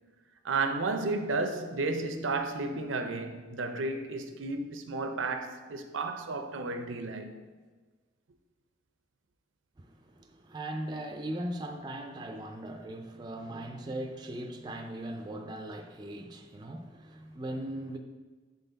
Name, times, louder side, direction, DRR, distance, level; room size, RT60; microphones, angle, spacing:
voice 1, 0.4-7.4, right 3 dB, 85° right, 0.6 m, -32 dB
voice 2, 9.8-18.0, right 1 dB, 20° right, 0.3 m, -39 dB
7.0 x 3.9 x 3.9 m
head